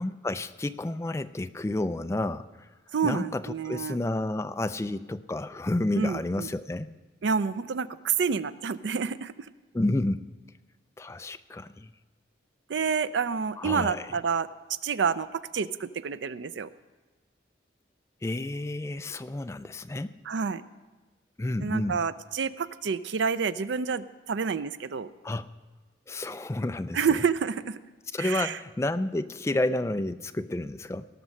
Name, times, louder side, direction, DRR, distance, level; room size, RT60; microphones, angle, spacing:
voice 1, 0.0-2.7 3.0-6.9 9.7-10.3 11.0-11.9 13.6-14.1 18.2-20.2 21.4-22.0 25.2-25.5 26.1-27.0 28.1-31.1, left 2 dB, 15° left, 11 dB, 0.3 m, -30 dB
voice 2, 2.9-4.0 6.0-6.5 7.2-9.3 12.7-14.5 14.8-16.7 20.2-20.6 21.6-25.1 26.9-27.8 28.2-28.6, right 6 dB, 75° right, 15 dB, 0.4 m, -28 dB
17.5 x 6.1 x 6.4 m, 1.2 s
head